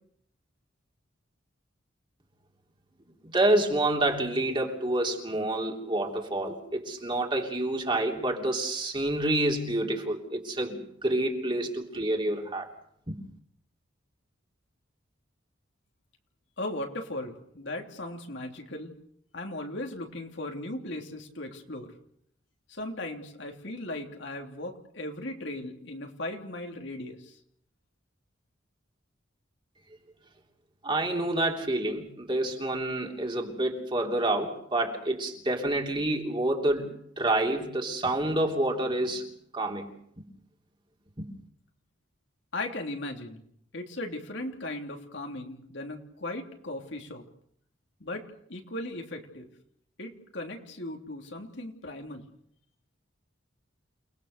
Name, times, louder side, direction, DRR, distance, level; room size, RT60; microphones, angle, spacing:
voice 1, 3.3-12.7 13.1-13.2 30.8-39.3 39.5-39.9 41.2-41.3, right 1 dB, 25° right, 1 dB, 3.3 m, -28 dB
voice 2, 16.6-18.9 19.3-21.9 22.7-27.4 42.5-43.4 43.7-47.2 48.0-48.2 48.5-49.5 50.0-52.2, left 1 dB, 65° left, 3 dB, 3.2 m, -37 dB
29.0 x 20.0 x 6.7 m, 0.69 s
head